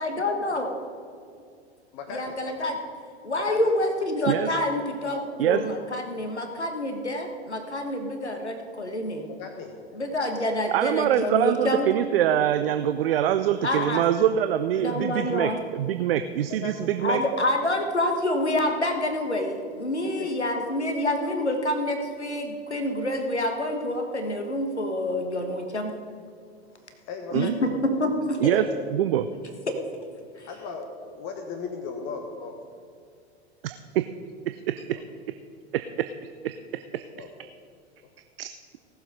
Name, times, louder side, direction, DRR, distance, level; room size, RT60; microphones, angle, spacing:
voice 1, 0.0-0.7 2.1-2.8 3.2-9.3 9.9-11.9 13.6-14.0 14.8-15.6 17.0-25.9 27.3-28.5 30.4-30.5, left 1 dB, 90° left, 5 dB, 1.4 m, -27 dB
voice 2, 1.9-2.4 3.3-3.7 5.3-5.5 9.3-9.7 16.5-16.9 20.2-20.3 26.8-27.7 28.5-28.8 30.5-32.6 34.9-35.0 37.2-37.3, left 5 dB, 40° left, 4 dB, 1.4 m, -37 dB
voice 3, 10.7-17.2 27.3-27.5 28.4-28.6 28.9-29.3 33.6-34.0 34.5-35.0 36.4-36.5 36.9-37.0 38.4-38.5, right 11 dB, 60° right, 9 dB, 0.6 m, -24 dB
18.0 x 7.3 x 5.2 m, 2.2 s
figure-of-eight pair, 95°, 33 cm